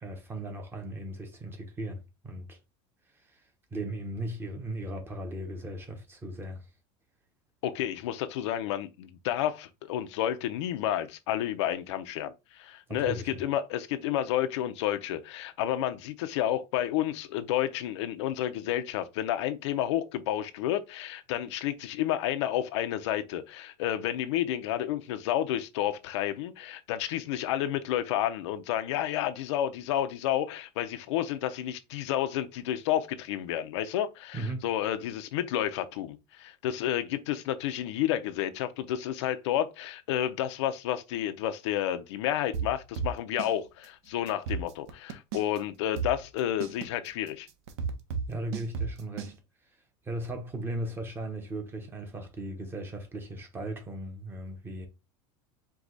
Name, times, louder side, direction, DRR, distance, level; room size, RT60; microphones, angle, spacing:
voice 1, 0.0-2.6 3.3-3.4 3.7-6.6 12.9-13.3 34.3-34.7 48.3-49.4 50.0-54.9, right 1 dB, 15° right, 0.9 m, -37 dB
voice 2, 7.6-47.5, left 11 dB, 85° left, 0.6 m, -30 dB
sound 1, 42.5-43.5 43.8-43.9 44.3-45.6 46.0-49.3, right 6 dB, 75° right, 0.9 m, -33 dB
4.7 x 2.3 x 3.9 m
supercardioid pair, 150°, 14 cm